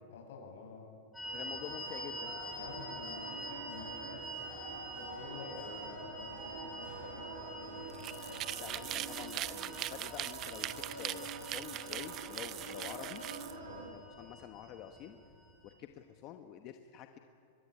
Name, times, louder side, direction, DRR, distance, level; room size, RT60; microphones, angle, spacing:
voice 1, 0.1-1.0 2.5-4.3 4.6-8.9 13.6-13.9, left 4 dB, 70° left, 1 dB, 7.8 m, -50 dB
sound 1, 1.1-15.7, equal, 5° left, 3.9 m, -47 dB
sound 2, 1.2-13.9, right 3 dB, 85° right, 6.6 m, -46 dB
voice 2, 1.3-2.4 8.6-10.7 11.0-13.2 13.9-15.2 15.6-17.2, left 10 dB, 30° left, 6 dB, 1.1 m, -48 dB
sound 3, 7.9-13.5, right 14 dB, 25° right, 0.6 m, -41 dB
23.5 x 22.0 x 9.8 m, 2.7 s
supercardioid pair, 165°, 0 cm